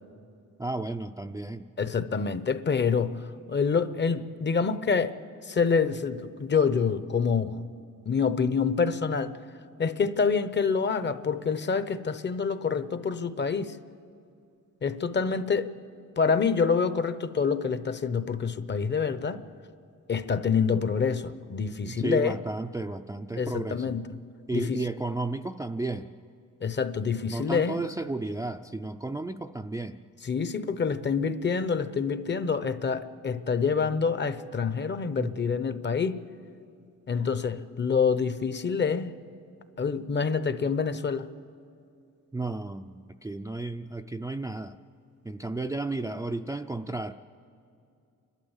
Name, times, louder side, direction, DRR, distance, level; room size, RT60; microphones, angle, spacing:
voice 1, 0.6-1.7 21.9-24.0 24.5-26.1 27.3-30.0 35.2-35.3 42.3-44.8 45.2-47.1, right 2 dB, 10° right, 6 dB, 0.4 m, -33 dB
voice 2, 1.8-5.2 5.4-7.6 8.1-9.4 9.8-13.8 14.8-15.7 16.2-19.4 20.1-22.4 23.4-24.1 24.5-24.8 26.6-27.8 30.2-36.2 37.1-39.1 39.8-41.3, left 5 dB, 35° left, 13 dB, 0.8 m, -27 dB
29.5 x 12.5 x 7.2 m, 2.5 s
cardioid pair, 110°, 33 cm